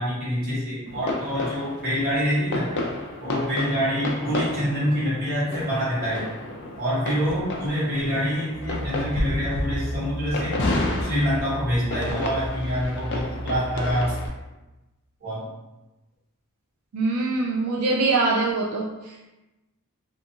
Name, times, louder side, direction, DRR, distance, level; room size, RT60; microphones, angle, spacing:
voice 1, 0.0-2.7 3.2-6.3 6.8-10.6 11.0-14.1 15.2-15.5, equal, 40° right, -9 dB, 1.3 m, -26 dB
sound 1, 0.9-14.3, left 2 dB, 50° left, 0.4 m, -31 dB
sound 2, 8.5-14.3, equal, 60° right, 0.9 m, -34 dB
voice 2, 16.9-19.3, right 3 dB, 85° right, -1 dB, 0.3 m, -24 dB
2.5 x 2.4 x 2.6 m, 1.0 s
head